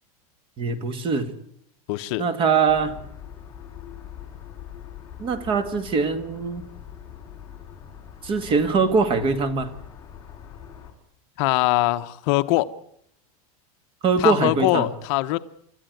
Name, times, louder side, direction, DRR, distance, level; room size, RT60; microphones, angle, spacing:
voice 1, 0.6-1.3 2.2-3.0 5.2-6.6 8.2-9.7 14.0-14.9, right 5 dB, 25° right, 1.8 m, -22 dB
voice 2, 1.9-2.2 11.4-12.7 14.2-15.4, left 19 dB, 50° left, 0.9 m, -22 dB
sound 1, 2.7-10.9, left 9 dB, 15° left, 5.0 m, -42 dB
29.5 x 13.5 x 9.2 m
supercardioid pair, 160°, 19 cm